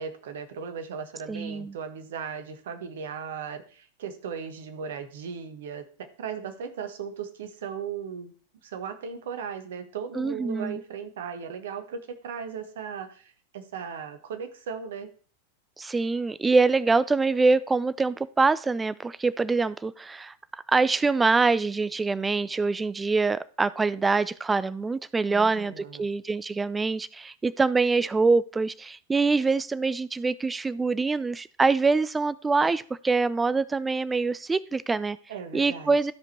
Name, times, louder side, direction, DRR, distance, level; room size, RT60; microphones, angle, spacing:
voice 1, 0.0-8.3 8.6-15.1 25.3-26.1 35.3-36.0, right 6 dB, 60° right, 8 dB, 1.4 m, -37 dB
voice 2, 1.3-1.7 10.1-10.8 15.8-20.3 20.7-35.2 35.5-36.1, right 4 dB, 10° right, 17 dB, 0.4 m, -24 dB
13.0 x 5.2 x 4.3 m, 0.43 s
figure-of-eight pair, 90°, 0 cm